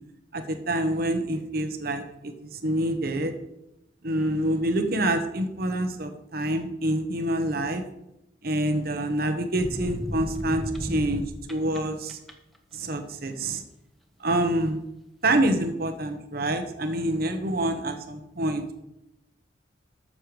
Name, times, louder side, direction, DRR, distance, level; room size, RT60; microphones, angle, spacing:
voice 1, 0.3-3.3 4.0-7.8 8.4-11.2 11.5-12.2 12.7-13.6 14.2-14.8 15.2-18.8, right 1 dB, 55° right, 7 dB, 1.2 m, -27 dB
sound 1, 9.6-11.8 12.1-12.6, equal, ahead, 1.3 m, -33 dB
14.0 x 6.7 x 5.1 m, 0.86 s
head